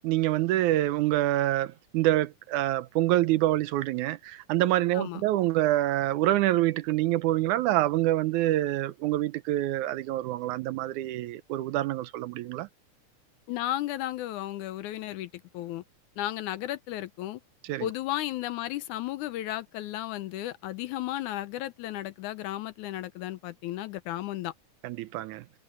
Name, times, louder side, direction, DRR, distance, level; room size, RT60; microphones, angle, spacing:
voice 1, 0.0-12.7 17.6-17.9 24.8-25.5, right 15 dB, 80° right, 2.0 m, -26 dB
voice 2, 13.5-15.8 16.2-17.4 17.8-24.5, left 14 dB, 80° left, 2.1 m, -34 dB
omnidirectional pair, 3.7 m